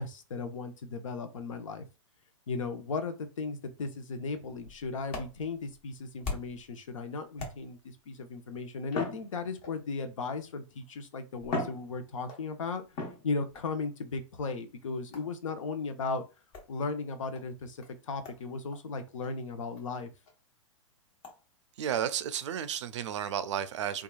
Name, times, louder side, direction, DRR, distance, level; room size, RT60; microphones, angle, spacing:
voice 1, 0.0-1.8 2.5-12.8 13.2-16.3 16.7-20.1, left 4 dB, 75° left, 0.7 m, -36 dB
sound 1, 4.6-6.7 7.4-8.0 8.9-10.0 10.8-10.9 11.4-12.5 13.0-13.7 15.1-15.4 16.5-16.7 17.3-17.4 17.8-17.9 18.2-18.4 18.7-18.8 19.2-19.3 19.8-19.9 20.3-20.4 21.2-21.4, left 3 dB, 35° left, 1.0 m, -39 dB
voice 2, 21.8-24.0, right 9 dB, 60° right, 0.4 m, -32 dB
2.9 x 2.3 x 2.3 m
hypercardioid pair, 115°, 17 cm